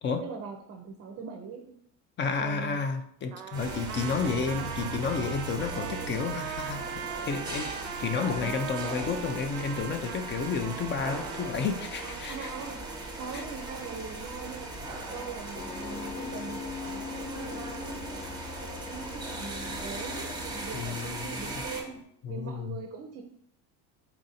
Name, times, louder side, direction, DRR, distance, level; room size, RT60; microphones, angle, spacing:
voice 1, 0.2-1.7 2.4-2.8 4.2-4.5 5.7-6.2 8.4-8.5 12.0-12.8 13.2-14.8 15.1-18.2 18.6-22.0 22.3-23.2, right 6 dB, 40° right, 3 dB, 0.5 m, -41 dB
voice 2, 2.2-7.7 8.0-12.5 13.3-13.4 20.7-21.4 22.2-22.8, left 5 dB, 30° left, 8 dB, 0.4 m, -31 dB
Trumpet, 3.3-11.8, right 9 dB, 85° right, 0.5 m, -40 dB
sound 1, 3.5-21.8, right 2 dB, 10° right, 0.9 m, -38 dB
Piano, 15.5-22.0, left 6 dB, 85° left, 0.9 m, -42 dB
4.2 x 2.5 x 4.0 m, 0.70 s
supercardioid pair, 110°, 38 cm